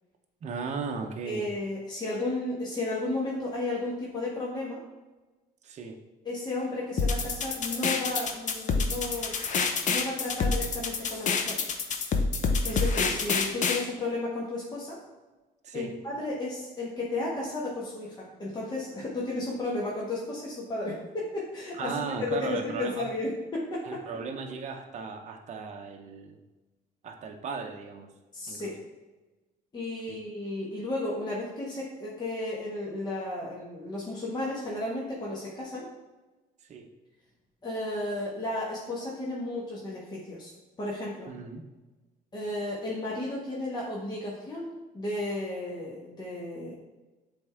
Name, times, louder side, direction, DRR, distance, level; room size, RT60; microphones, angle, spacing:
voice 1, 0.4-1.5 5.6-6.0 15.6-15.9 21.7-23.0 23.8-26.4 27.0-28.1 28.5-28.7 30.1-30.2 36.7-36.9 41.3-41.6, right 5 dB, 45° right, 3 dB, 0.7 m, -36 dB
voice 2, 1.2-4.8 6.2-9.3 9.9-11.6 12.6-15.0 15.7-24.0 28.3-28.8 29.7-35.9 37.6-40.5 40.8-41.3 42.3-46.7, left 2 dB, 25° left, -5 dB, 1.3 m, -33 dB
sound 1, 7.0-13.8, left 4 dB, 45° left, 0.7 m, -27 dB
7.8 x 3.5 x 3.5 m, 1.2 s
cardioid pair, 110°, 17 cm